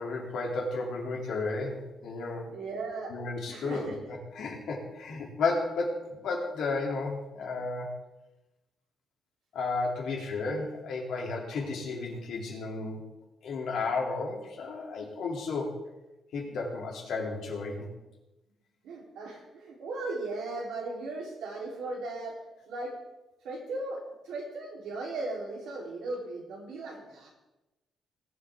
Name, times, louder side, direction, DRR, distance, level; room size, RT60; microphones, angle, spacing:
voice 1, 0.0-2.5 3.1-8.0 9.5-13.1 13.4-15.8 16.3-17.9, left 3 dB, 70° left, 0 dB, 2.8 m, -33 dB
voice 2, 2.5-3.1 3.4-4.0 18.8-22.3 22.7-22.9 23.4-27.3, right 2 dB, 80° right, -2 dB, 3.4 m, -37 dB
19.0 x 7.7 x 3.6 m, 1.0 s
cardioid pair, 90°, 0 cm